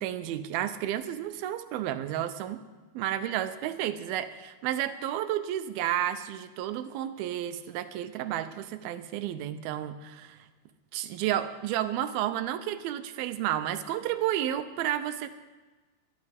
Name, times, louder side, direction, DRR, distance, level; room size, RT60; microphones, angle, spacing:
voice 1, 0.0-2.6 2.9-10.5 10.9-15.3, right 11 dB, 80° right, 10 dB, 2.5 m, -31 dB
22.5 x 12.0 x 3.5 m, 1.2 s
omnidirectional pair, 4.4 m